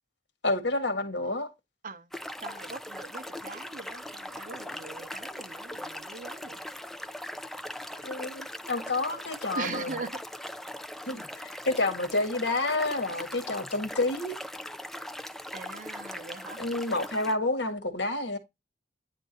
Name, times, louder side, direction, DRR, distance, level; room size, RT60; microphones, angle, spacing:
voice 1, 0.4-1.5 8.0-9.9 11.0-14.4 16.6-18.4, left 2 dB, 75° left, 1.7 m, -29 dB
sound 1, 2.1-17.3, left 1 dB, ahead, 0.5 m, -40 dB
voice 2, 2.4-6.6 9.5-10.2 15.5-16.6, right 4 dB, 45° right, 0.9 m, -41 dB
10.0 x 3.7 x 4.0 m
head